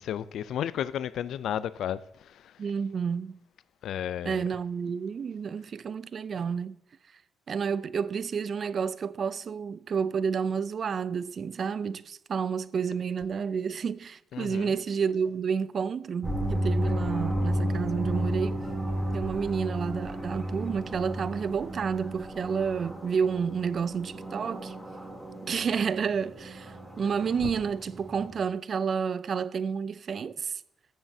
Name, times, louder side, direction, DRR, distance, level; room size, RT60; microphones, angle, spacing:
voice 1, 0.0-2.4 3.8-4.4 14.3-14.7 27.4-27.5, left 10 dB, 75° left, 0.3 m, -33 dB
voice 2, 2.6-3.4 4.2-6.8 7.5-18.6 19.1-24.7 25.5-30.6, right 6 dB, 50° right, 0.4 m, -30 dB
sound 1, 16.2-28.3, equal, 5° right, 2.9 m, -33 dB
15.0 x 7.3 x 2.7 m
cardioid pair, 90°, 0 cm